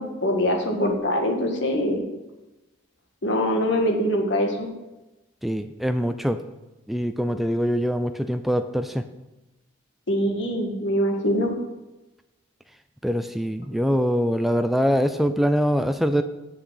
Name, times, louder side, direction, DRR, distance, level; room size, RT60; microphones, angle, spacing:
voice 1, 0.0-2.0 3.2-4.7 10.1-11.5, equal, 65° left, 3 dB, 1.8 m, -23 dB
voice 2, 5.4-6.4 6.9-9.1 13.0-16.2, equal, ahead, 8 dB, 0.4 m, -23 dB
8.0 x 6.7 x 7.6 m, 1.0 s
head